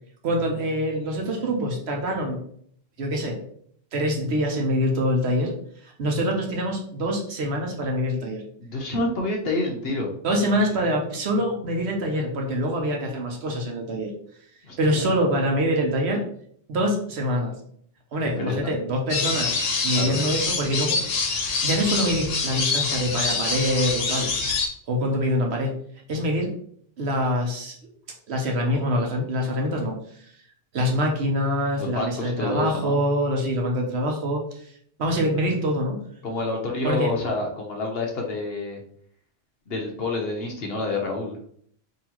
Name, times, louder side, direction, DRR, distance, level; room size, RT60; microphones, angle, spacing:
voice 1, 0.2-2.4 3.0-3.4 3.9-5.5 5.8-8.4 10.2-14.1 14.8-16.2 16.7-17.5 18.1-19.5 19.8-21.3 21.6-24.3 24.9-25.7 26.1-26.5 27.0-27.7 28.3-30.0 30.7-34.4 35.0-36.0 36.8-37.1, equal, 60° right, 1 dB, 1.0 m, -25 dB
voice 2, 8.6-10.1 14.7-15.0 18.4-18.7 19.9-20.2 31.7-33.0 36.2-38.8 39.7-41.4, left 2 dB, 55° left, 1 dB, 0.9 m, -28 dB
sound 1, 19.1-24.7, left 4 dB, 80° left, 1.1 m, -25 dB
3.9 x 2.7 x 2.9 m, 0.62 s
omnidirectional pair, 1.3 m